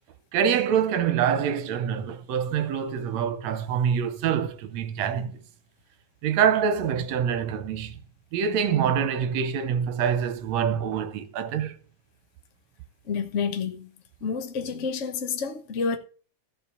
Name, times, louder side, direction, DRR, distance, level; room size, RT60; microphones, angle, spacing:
voice 1, 0.3-5.4 6.2-7.9 8.3-11.8, right 8 dB, 70° right, 2.0 m, -25 dB
voice 2, 13.1-13.9 14.2-16.0, left 5 dB, 80° left, 0.6 m, -29 dB
14.0 x 5.2 x 6.7 m
omnidirectional pair, 3.4 m